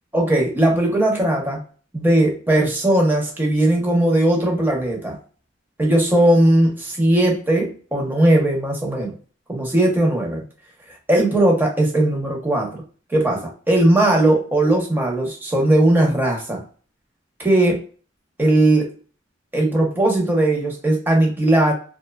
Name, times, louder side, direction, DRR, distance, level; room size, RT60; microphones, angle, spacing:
voice 1, 0.1-1.6 1.9-5.2 5.8-9.2 9.5-10.4 11.1-12.8 13.1-16.6 17.4-17.8 18.4-18.8 19.5-21.7, right 1 dB, 10° right, -1 dB, 0.7 m, -18 dB
2.8 x 2.2 x 2.2 m, 0.40 s
head